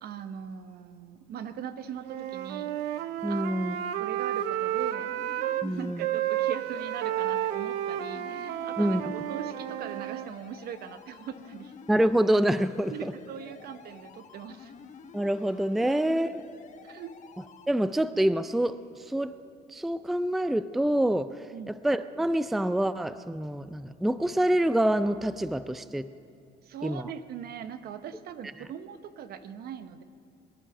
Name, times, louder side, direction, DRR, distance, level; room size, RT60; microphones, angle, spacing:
voice 1, 0.0-2.7 3.3-3.5 4.0-5.1 5.6-11.7 12.9-14.7 15.9-16.3 16.8-17.1 21.5-21.7 26.6-30.0, right 8 dB, 65° right, 11 dB, 0.9 m, -41 dB
Wind instrument woodwind instrument, 2.1-5.7 6.0-10.3, right 11 dB, 90° right, 0.6 m, -31 dB
voice 2, 3.2-3.8 5.6-6.0 8.8-9.1 11.9-12.9 15.1-16.3 17.7-18.8 19.1-19.3 19.7-21.3 21.7-26.1 26.8-27.0, right 1 dB, ahead, 14 dB, 0.4 m, -26 dB
sound 1, 5.0-17.7, left 6 dB, 45° left, 1.1 m, -50 dB
22.5 x 10.0 x 6.0 m, 2.7 s
cardioid pair, 110°, 17 cm